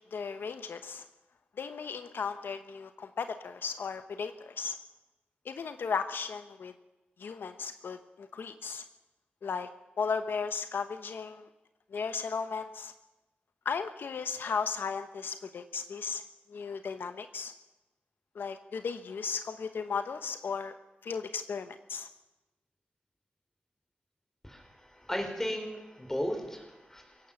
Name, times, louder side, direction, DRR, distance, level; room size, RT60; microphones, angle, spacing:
voice 1, 0.1-1.0 1.6-4.8 5.4-6.7 7.2-8.8 9.4-9.7 10.0-11.5 11.9-12.9 13.6-16.2 16.5-17.5 18.3-20.7 21.0-22.1, left 5 dB, 75° left, 9 dB, 1.0 m, -35 dB
voice 2, 24.4-27.3, equal, 10° left, 5 dB, 4.4 m, -36 dB
23.0 x 17.0 x 7.1 m, 1.0 s
wide cardioid pair, 115°, 4 cm